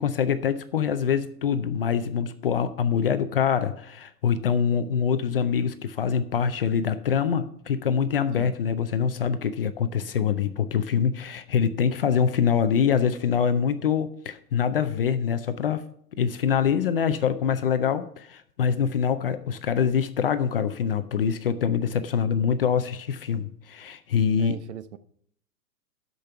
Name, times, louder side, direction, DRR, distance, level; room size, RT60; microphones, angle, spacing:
voice 1, 0.0-15.8 16.1-24.6, left 7 dB, 40° left, 11 dB, 0.4 m, -24 dB
voice 2, 24.4-25.0, right 11 dB, 45° right, 14 dB, 0.6 m, -39 dB
12.5 x 5.3 x 5.7 m, 0.66 s
supercardioid pair, 170°, 47 cm